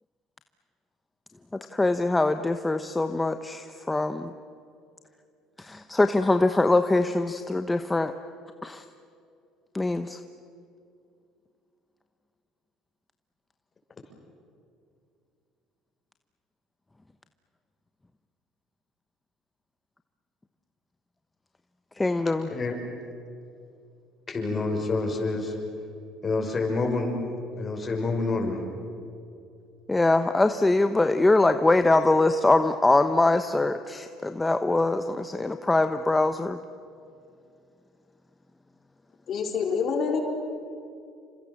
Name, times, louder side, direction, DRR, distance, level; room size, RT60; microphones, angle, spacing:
voice 1, 1.7-4.3 5.6-8.1 8.6-8.8 9.7-10.2 22.0-22.5 29.9-36.6, left 2 dB, 15° left, 8 dB, 1.0 m, -23 dB
voice 2, 24.3-25.6 26.2-27.2 27.6-28.6, left 3 dB, 30° left, 2 dB, 6.2 m, -27 dB
voice 3, 39.3-40.2, left 6 dB, 50° left, 2 dB, 4.7 m, -26 dB
29.5 x 26.0 x 7.3 m, 2.6 s
supercardioid pair, 105°, 0 cm